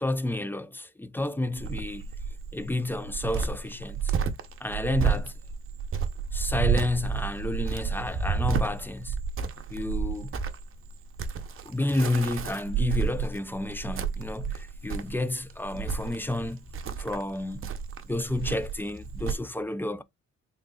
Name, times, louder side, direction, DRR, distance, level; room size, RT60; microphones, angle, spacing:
voice 1, 0.0-2.1 2.5-4.1 4.6-5.3 6.3-9.2 9.7-10.3 11.6-16.6 17.0-17.7 18.0-20.0, left 2 dB, 5° left, 0.4 m, -30 dB
Cricket, 1.6-19.3, right 6 dB, 45° right, 0.7 m, -31 dB
3.8 x 3.7 x 2.3 m
cardioid pair, 90°, 30 cm